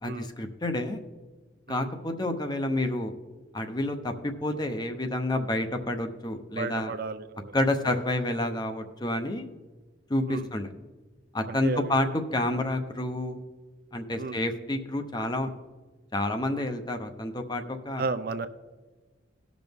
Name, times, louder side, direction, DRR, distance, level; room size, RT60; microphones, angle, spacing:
voice 1, 0.0-1.0 1.7-3.1 3.5-6.9 7.5-9.5 10.1-10.7 11.3-13.4 13.9-15.5 16.1-18.0, left 1 dB, 20° left, 6 dB, 0.7 m, -29 dB
voice 2, 6.5-7.6 7.8-8.0 10.3-10.5 11.5-12.0 14.2-14.4 16.5-16.6 18.0-18.5, right 4 dB, 50° right, 10 dB, 0.5 m, -33 dB
18.0 x 6.1 x 3.5 m, 1.3 s
head